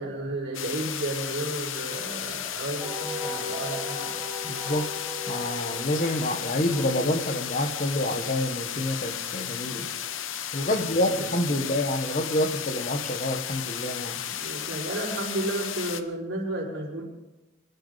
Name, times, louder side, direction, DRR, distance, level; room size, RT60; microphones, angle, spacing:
voice 1, 0.0-4.2 10.7-11.6 14.3-17.0, right 1 dB, 80° right, -4 dB, 5.2 m, -33 dB
sound 1, 0.5-16.0, left 10 dB, 90° left, 0.8 m, -34 dB
Wind instrument woodwind instrument, 2.8-7.6, left 1 dB, 10° right, 1.3 m, -38 dB
voice 2, 4.4-4.9 5.3-9.9 10.5-14.2, left 1 dB, 40° left, 8 dB, 1.2 m, -27 dB
23.5 x 11.5 x 4.0 m, 1.0 s
head